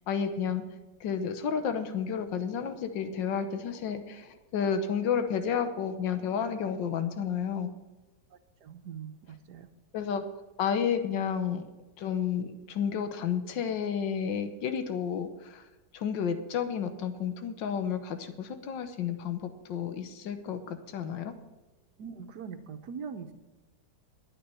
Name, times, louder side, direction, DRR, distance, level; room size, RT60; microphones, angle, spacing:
voice 1, 0.1-0.6 1.0-7.7 9.9-10.2 10.6-11.7 12.0-15.6 15.9-21.3, left 7 dB, 80° left, 9 dB, 1.7 m, -31 dB
voice 2, 8.6-9.7 22.0-23.3, right 6 dB, 65° right, 8 dB, 1.6 m, -42 dB
12.0 x 9.4 x 5.7 m, 1.1 s
omnidirectional pair, 2.0 m